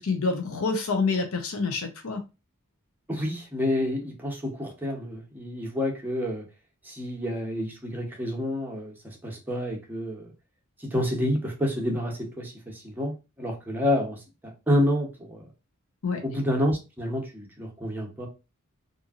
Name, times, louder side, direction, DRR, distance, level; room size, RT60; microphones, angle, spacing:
voice 1, 0.0-2.2 16.0-16.2, left 4 dB, 70° left, 0.6 m, -27 dB
voice 2, 3.1-6.4 6.8-10.3 10.8-15.4 16.2-18.3, left 1 dB, 10° right, 0.8 m, -29 dB
2.8 x 2.6 x 2.4 m
head